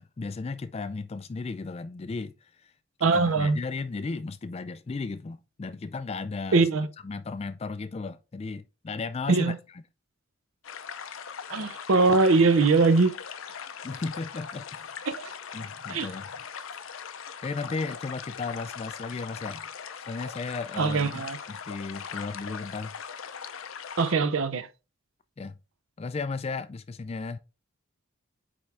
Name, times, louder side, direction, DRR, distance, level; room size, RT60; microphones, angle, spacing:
voice 1, 0.0-2.7 3.1-6.6 7.0-9.5 13.8-15.0 15.5-16.3 17.4-19.7 20.0-22.9 25.4-25.6 26.0-27.4, left 4 dB, 30° left, 0.3 m, -35 dB
voice 2, 3.0-3.6 6.5-6.9 9.3-9.6 11.5-13.1 15.1-15.3 15.9-16.1 20.8-21.4 24.0-24.7, right 3 dB, 75° right, 0.6 m, -22 dB
sound 1, 10.6-24.1, left 7 dB, 75° left, 0.6 m, -40 dB
8.7 x 3.5 x 3.4 m
head